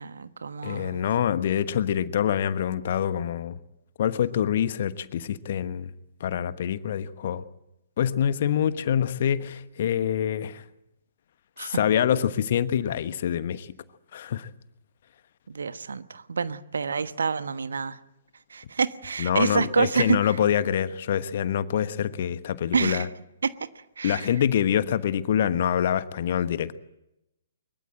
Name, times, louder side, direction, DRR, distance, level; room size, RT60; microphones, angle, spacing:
voice 1, 0.0-1.0 11.6-11.8 15.5-18.0 18.5-20.3 22.7-23.1 23.4-23.5 24.0-24.2, right 5 dB, 65° right, 13 dB, 1.2 m, -27 dB
voice 2, 0.6-3.6 4.0-5.9 6.2-7.4 8.0-10.6 11.6-13.7 14.1-14.5 19.2-23.1 24.0-26.7, left 9 dB, 45° left, 13 dB, 1.2 m, -25 dB
23.5 x 22.0 x 7.7 m, 0.86 s
figure-of-eight pair, 120°, 0 cm